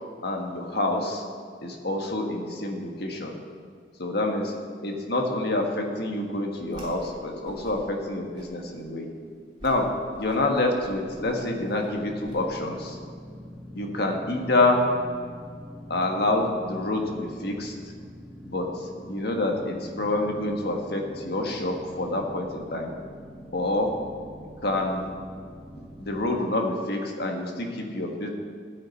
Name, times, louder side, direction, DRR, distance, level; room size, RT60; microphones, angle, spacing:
voice 1, 0.2-1.2 1.6-3.4 4.0-4.4 4.8-9.1 9.6-9.9 10.2-13.0 13.7-14.9 15.9-17.9 18.5-22.9 23.5-23.9 24.4-25.1 25.7-28.3, left 2 dB, 60° left, 2 dB, 1.5 m, -27 dB
Whoosh swoosh swish, 6.7-7.2 7.4-8.0 8.3-8.8 9.2-9.3 9.6-9.8 10.1-12.3, equal, 25° right, 3.2 m, -44 dB
sound 1, 11.1-26.4, equal, ahead, 0.7 m, -44 dB
14.0 x 8.9 x 4.1 m, 2.1 s
head